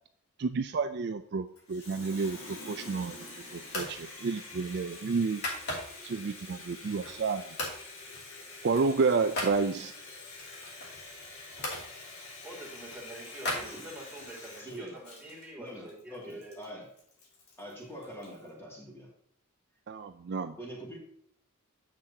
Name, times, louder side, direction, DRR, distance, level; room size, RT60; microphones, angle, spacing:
voice 1, 0.4-2.4 2.7-3.2 3.5-5.4 6.0-7.4 8.6-9.9 19.9-20.5, right 4 dB, 50° right, 8 dB, 0.4 m, -30 dB
Water tap faucet, 1.6-18.5, left 3 dB, 75° left, 3.1 m, -47 dB
sound 1, 2.8-3.2 3.7-4.0 4.4-6.1 6.6-7.3 7.6-7.8 8.1-9.6 10.4-11.9 12.4-14.3, left 1 dB, 50° left, 2.6 m, -38 dB
voice 2, 12.4-16.6, right 1 dB, 5° right, -4 dB, 2.9 m, -46 dB
voice 3, 13.5-13.9 14.6-14.9 15.6-16.8 17.6-19.1 20.6-21.0, equal, 10° left, -3 dB, 2.4 m, -44 dB
10.0 x 7.4 x 2.8 m, 0.68 s
head